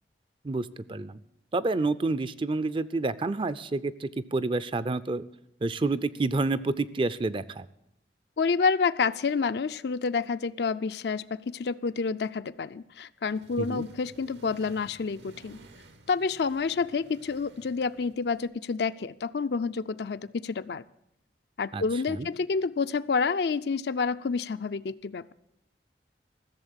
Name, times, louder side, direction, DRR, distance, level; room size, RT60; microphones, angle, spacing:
voice 1, 0.4-1.2 1.5-5.2 5.6-7.7 13.6-13.8 21.7-21.8 22.1-22.3, right 3 dB, 30° right, 16 dB, 0.4 m, -29 dB
voice 2, 8.4-15.6 16.1-20.8 21.6-25.2, left 5 dB, 65° left, 13 dB, 0.5 m, -29 dB
Accelerating revving vroom, 13.2-18.5, right 2 dB, 80° right, 1.3 m, -54 dB
14.5 x 7.2 x 9.9 m, 0.77 s
head